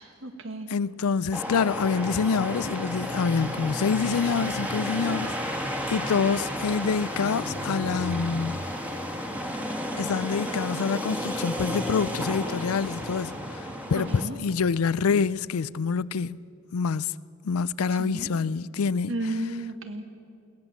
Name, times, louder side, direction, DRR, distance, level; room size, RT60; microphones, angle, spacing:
voice 1, 0.0-0.7 13.9-14.4 17.9-18.3 19.1-20.0, right 1 dB, 65° right, 1.8 m, -33 dB
voice 2, 0.7-5.6 5.9-8.7 9.7-16.4 16.7-17.1 17.4-19.1, left 5 dB, 90° left, 0.4 m, -26 dB
sound 1, 1.3-14.3, equal, 5° right, 1.6 m, -32 dB
21.0 x 17.5 x 7.3 m
head